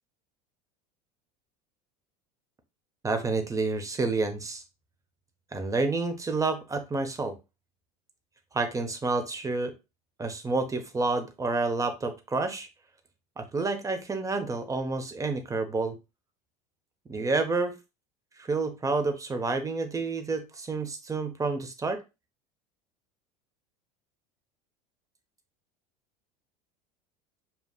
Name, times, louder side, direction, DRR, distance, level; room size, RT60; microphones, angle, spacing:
voice 1, 3.0-4.6 5.5-7.3 8.5-9.7 10.2-12.7 13.4-15.9 17.1-17.7 18.4-22.0, right 3 dB, 15° right, 7 dB, 0.9 m, -29 dB
7.0 x 2.4 x 2.4 m, 0.26 s
hypercardioid pair, 90°, 20 cm